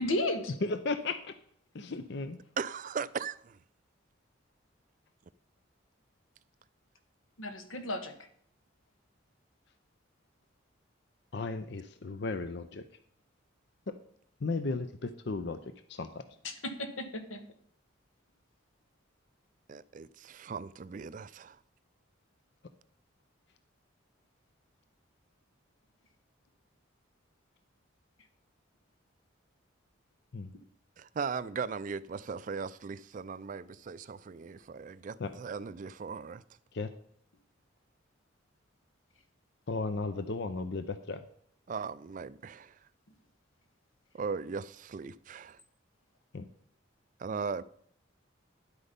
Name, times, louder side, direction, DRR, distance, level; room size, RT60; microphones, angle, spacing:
voice 1, 0.0-0.6 7.4-8.1 16.4-17.4, left 1 dB, 85° left, 1.5 m, -34 dB
voice 2, 0.6-1.3 1.7-2.4 11.3-12.8 13.9-14.0 14.4-15.6 15.9-16.2 30.3-30.5 35.2-35.3 36.7-36.9 39.7-41.2 46.3-46.5, left 3 dB, 55° left, 0.6 m, -35 dB
voice 3, 2.6-3.6 19.7-21.6 31.0-36.4 41.7-42.8 44.1-45.6 47.2-47.6, right 5 dB, 40° right, 0.3 m, -38 dB
10.5 x 8.2 x 5.2 m
head